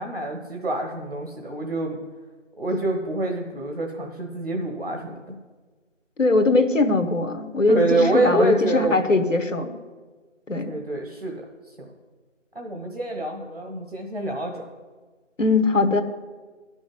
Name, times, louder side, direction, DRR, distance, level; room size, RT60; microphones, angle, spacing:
voice 1, 0.0-2.0 2.6-5.3 7.7-9.1 10.6-11.3 11.7-11.9 12.5-14.7, right 2 dB, 50° right, 2 dB, 1.3 m, -26 dB
voice 2, 6.2-9.7 10.5-10.7 15.4-16.0, left 3 dB, 80° left, 8 dB, 1.3 m, -21 dB
10.5 x 6.2 x 7.9 m, 1.4 s
figure-of-eight pair, 175°, 38 cm